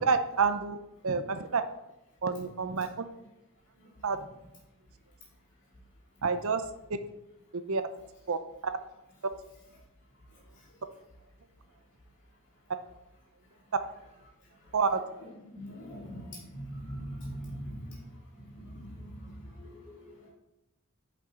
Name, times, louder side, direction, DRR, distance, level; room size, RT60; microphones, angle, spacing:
voice 1, 0.0-0.8 1.0-1.6 2.2-3.0 4.0-4.2 6.2-6.6 7.7-7.8 8.3-8.7 14.7-15.0, right 5 dB, 70° right, 10 dB, 0.7 m, -28 dB
voice 2, 15.5-18.0 18.4-20.3, equal, 60° left, -6 dB, 2.9 m, -42 dB
10.5 x 5.8 x 3.8 m, 0.92 s
head